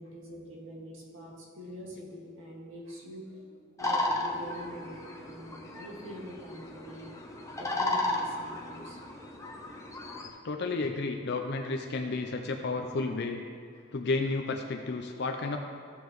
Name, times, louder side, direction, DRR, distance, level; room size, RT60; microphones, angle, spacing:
voice 1, 0.0-7.1 7.6-9.0 13.8-14.0, equal, 70° right, -3 dB, 2.1 m, -45 dB
sound 1, 3.8-10.3, left 2 dB, 15° left, 0.8 m, -34 dB
voice 2, 10.3-13.4 13.9-15.6, left 3 dB, 55° left, 4 dB, 0.5 m, -32 dB
14.5 x 7.0 x 3.1 m, 2.3 s
head